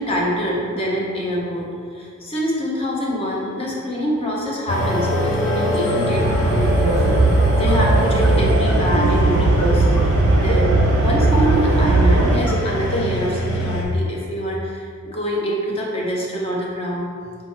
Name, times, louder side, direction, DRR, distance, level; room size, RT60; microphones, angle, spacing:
voice 1, 0.0-10.1 10.3-17.1, equal, 30° left, -3 dB, 0.7 m, -25 dB
sound 1, 4.7-13.8, left 1 dB, 75° left, 0.6 m, -23 dB
sound 2, 6.1-12.4, right 2 dB, 65° right, 0.3 m, -18 dB
4.3 x 2.9 x 3.5 m, 2.1 s
head